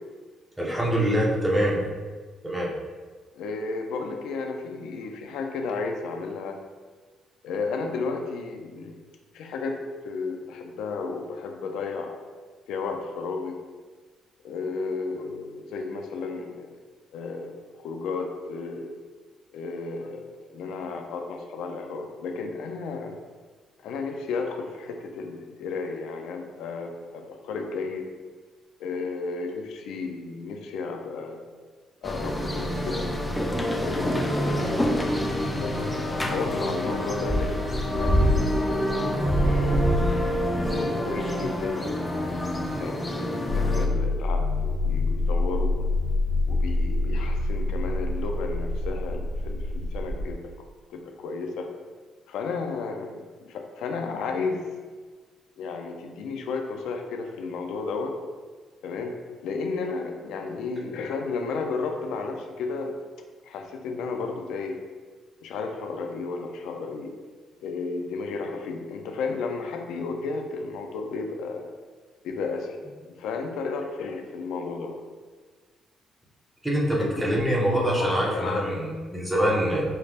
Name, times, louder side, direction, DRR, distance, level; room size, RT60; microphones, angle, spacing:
voice 1, 0.6-1.8 2.4-2.7 76.6-79.8, equal, 10° right, -4 dB, 1.1 m, -24 dB
voice 2, 3.3-6.6 7.4-9.0 9.3-9.8 10.0-12.2 12.7-13.6 14.4-16.7 17.1-18.9 19.5-23.2 23.8-28.1 28.8-31.4 32.0-33.1 33.8-34.9 35.3-39.8 40.7-45.7 46.5-50.4 50.9-51.7 52.3-54.6 55.6-58.2 58.8-59.1 59.4-63.0 63.4-64.8 65.4-67.1 67.6-71.7 72.2-72.8 73.0-75.0 77.0-78.8, left 4 dB, 85° left, 3 dB, 0.5 m, -33 dB
sound 1, 32.0-43.9, equal, 15° left, 0.5 m, -26 dB
sound 2, 43.5-50.3, left 2 dB, 50° left, 1.0 m, -26 dB
5.5 x 3.3 x 2.4 m, 1.4 s
cardioid pair, 90°, 0 cm